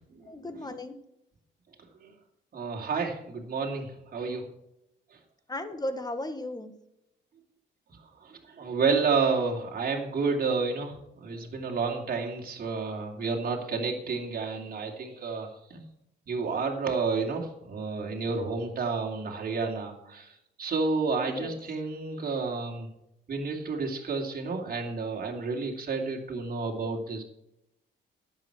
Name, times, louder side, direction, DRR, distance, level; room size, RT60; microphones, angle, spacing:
voice 1, 0.2-1.0 5.5-6.7 21.2-21.6, left 1 dB, 20° left, 9 dB, 1.7 m, -35 dB
voice 2, 2.5-4.5 8.2-15.8 16.3-22.9 23.3-27.2, right 4 dB, 45° right, 0 dB, 2.7 m, -30 dB
11.5 x 8.0 x 6.0 m, 0.84 s
cardioid pair, 90°, 20 cm